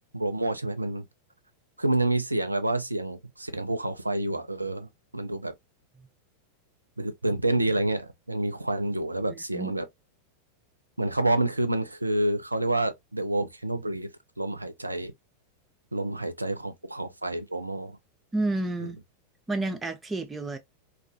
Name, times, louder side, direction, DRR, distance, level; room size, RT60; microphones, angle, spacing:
voice 1, 0.1-1.0 1.8-5.5 7.0-9.9 11.0-14.1 14.4-15.1 15.9-18.0 18.8-18.9, right 1 dB, 85° right, 0.3 m, -28 dB
voice 2, 9.3-9.7 18.3-19.0 19.5-20.6, right 2 dB, 10° right, 0.4 m, -30 dB
2.3 x 2.2 x 2.4 m
figure-of-eight pair, 90°, 0 cm